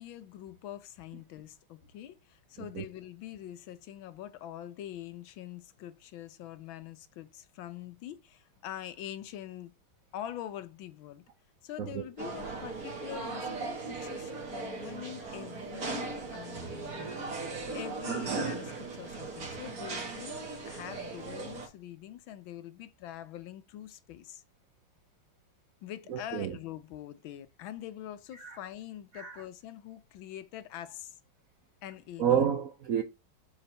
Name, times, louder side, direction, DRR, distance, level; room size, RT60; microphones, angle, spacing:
voice 1, 0.0-9.7 10.1-11.2 11.6-17.0 17.7-24.4 25.8-31.2 31.8-32.5, left 12 dB, 75° left, 1.4 m, -44 dB
sound 1, 12.2-21.7, right 4 dB, 45° right, 2.0 m, -38 dB
voice 2, 26.1-26.5 28.4-28.6 29.1-29.4 32.2-33.0, right 8 dB, 70° right, 0.8 m, -29 dB
6.9 x 5.0 x 3.3 m
omnidirectional pair, 2.3 m